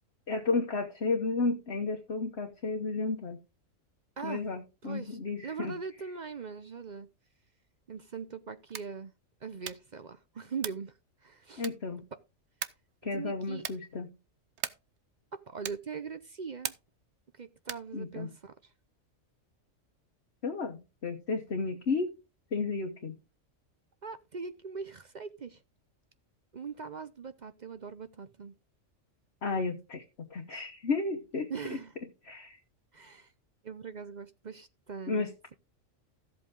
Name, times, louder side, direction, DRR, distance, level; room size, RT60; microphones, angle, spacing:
voice 1, 0.3-3.4 4.2-5.7 11.6-12.0 13.0-14.1 17.9-18.3 20.4-22.1 22.5-23.2 29.4-31.8 32.2-32.6 35.1-35.3, left 3 dB, 55° left, 1.3 m, -32 dB
voice 2, 4.8-7.1 7.9-9.1 9.4-11.0 11.2-11.7 13.1-13.6 15.3-16.7 17.3-18.7 24.0-25.6 26.5-28.6 31.5-31.9 32.9-33.3 33.6-35.5, right 5 dB, 45° right, 0.7 m, -41 dB
sound 1, 8.6-9.0 9.6-10.0 10.6-10.9 11.6-12.0 12.6-12.9 13.6-13.9 14.6-15.0 15.6-16.0 16.6-17.0 17.6-18.0, right 9 dB, 65° right, 1.0 m, -40 dB
14.0 x 7.8 x 3.7 m
omnidirectional pair, 1.4 m